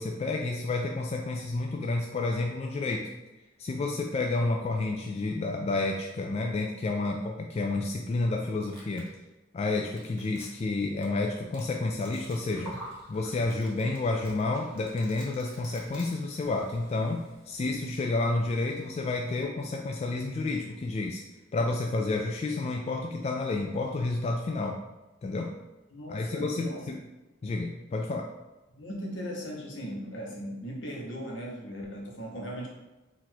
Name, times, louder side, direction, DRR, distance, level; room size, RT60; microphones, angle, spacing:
voice 1, 0.0-3.1 3.6-9.1 9.5-12.8 13.1-21.2 21.5-24.8 25.2-25.5 26.1-27.0 27.4-28.3, left 2 dB, 35° left, 1 dB, 0.3 m, -30 dB
Domestic sounds home sounds, 8.7-9.1 9.7-10.7 11.0-11.1 11.5-11.7 12.0-12.4 12.6-12.7 13.1-13.2 13.4-14.0 14.2-16.1, right 3 dB, 25° right, 1.0 m, -51 dB
Gurgling, 12.2-19.4, right 1 dB, 5° left, 1.3 m, -50 dB
voice 2, 25.9-26.8 28.7-32.7, equal, 70° left, -1 dB, 1.0 m, -38 dB
4.0 x 2.5 x 4.3 m, 1.1 s
head